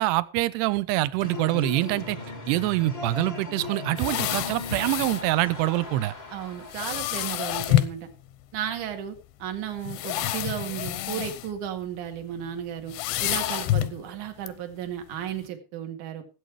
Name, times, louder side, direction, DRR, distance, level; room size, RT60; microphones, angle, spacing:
voice 1, 0.0-2.2 2.5-6.1, right 17 dB, 80° right, 2.8 m, -25 dB
sound 1, 1.2-6.7, left 2 dB, 55° left, 0.7 m, -38 dB
sound 2, 4.0-5.3 6.7-8.0 8.9-9.0 9.8-11.5 11.8-12.1 12.9-14.0 14.5-14.6, left 14 dB, 85° left, 3.0 m, -27 dB
voice 2, 6.3-8.1 8.5-12.9 13.2-16.2, right 9 dB, 55° right, 2.9 m, -34 dB
16.0 x 9.0 x 4.7 m
omnidirectional pair, 4.9 m